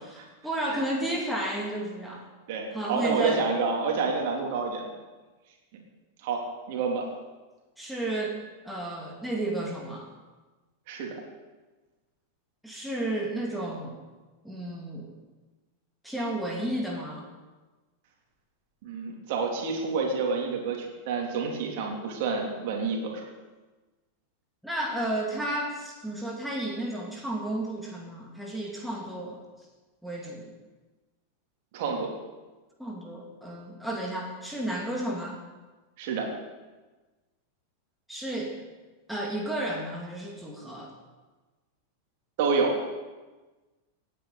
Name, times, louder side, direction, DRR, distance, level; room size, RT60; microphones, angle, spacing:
voice 1, 0.0-2.2 2.7-3.5 7.8-8.4 8.6-10.1 12.6-14.0 14.4-15.1 16.0-17.3 24.6-29.4 30.0-30.5 32.8-35.4 38.1-38.6 39.1-40.9, right 1 dB, ahead, -2 dB, 2.4 m, -32 dB
voice 2, 2.5-4.9 6.2-7.0 10.9-11.1 18.8-23.3 31.7-32.1 36.0-36.3 42.4-42.8, right 4 dB, 50° right, 0 dB, 3.2 m, -28 dB
26.0 x 9.6 x 4.1 m, 1.2 s
figure-of-eight pair, 90°, 0 cm